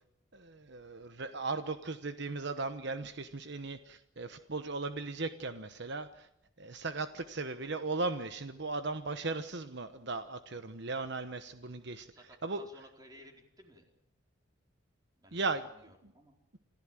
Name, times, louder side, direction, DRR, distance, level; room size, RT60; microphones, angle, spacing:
voice 1, 0.3-6.3 6.6-12.1 12.4-12.7 15.3-15.7 16.0-16.1, right 3 dB, 55° right, 10 dB, 1.1 m, -37 dB
voice 2, 12.1-13.8 15.2-16.4, equal, 20° right, 2 dB, 4.5 m, -57 dB
27.0 x 15.0 x 7.7 m, 0.79 s
head